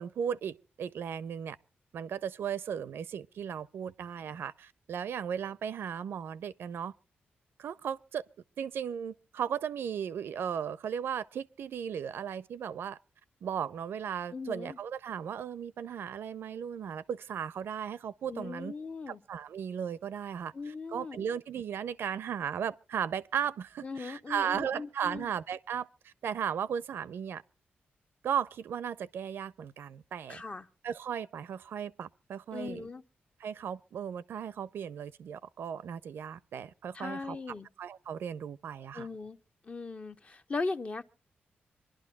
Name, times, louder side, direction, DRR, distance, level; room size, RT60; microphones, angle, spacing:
voice 1, 0.0-1.6 1.9-6.9 7.6-8.2 8.6-13.0 13.4-18.7 19.1-27.4 28.2-30.4 30.8-32.9 33.4-37.4 37.8-39.1, right 8 dB, 90° right, 0.6 m, -36 dB
voice 2, 14.3-14.8 18.3-19.2 20.5-21.3 23.8-25.3 30.3-30.7 32.5-33.0 36.9-37.7 38.9-39.4 39.6-41.0, left 3 dB, 35° left, 0.8 m, -38 dB
26.5 x 11.5 x 2.4 m
wide cardioid pair, 115°, 4 cm